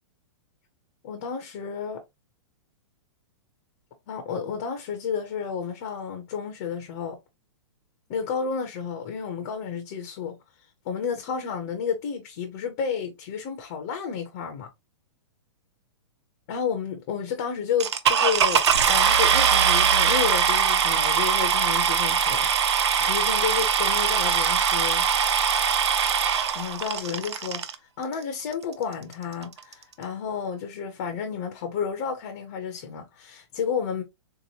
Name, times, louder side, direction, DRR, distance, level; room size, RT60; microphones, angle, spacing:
voice 1, 1.0-2.0 4.1-7.2 8.1-10.4 10.9-14.7 16.5-18.6 18.9-25.0 26.5-27.6 28.0-34.0, left 6 dB, 20° left, 0.4 m, -31 dB
sound 1, 17.8-27.7 28.5-28.6 29.1-29.2 29.4-29.7, right 7 dB, 60° right, 0.6 m, -22 dB
3.7 x 2.7 x 2.7 m
hypercardioid pair, 175°, 16 cm